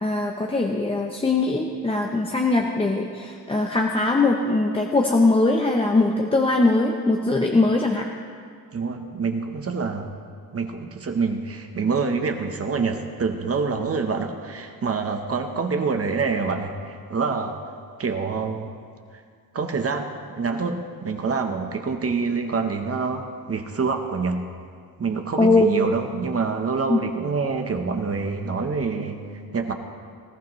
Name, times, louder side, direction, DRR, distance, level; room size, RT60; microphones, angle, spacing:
voice 1, 0.0-8.1 25.4-25.9 26.9-27.0, left 2 dB, 15° left, 1 dB, 0.7 m, -21 dB
voice 2, 8.7-10.1 10.5-17.5 18.0-18.7 19.5-24.4 25.0-29.2 29.5-29.7, right 4 dB, 40° right, 5 dB, 1.0 m, -26 dB
19.5 x 15.0 x 3.1 m, 2.1 s
wide cardioid pair, 150°, 37 cm